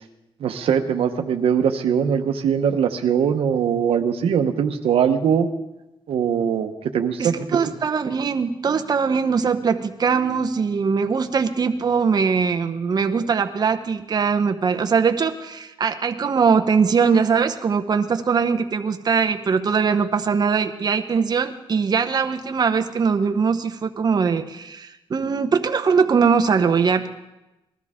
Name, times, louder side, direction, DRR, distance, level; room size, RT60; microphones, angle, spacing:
voice 1, 0.4-5.5 6.1-7.3, right 7 dB, 90° right, 6 dB, 0.9 m, -21 dB
voice 2, 7.2-27.1, right 5 dB, 45° right, 6 dB, 0.8 m, -21 dB
19.5 x 13.0 x 3.6 m, 0.95 s
cardioid pair, 100°, 10 cm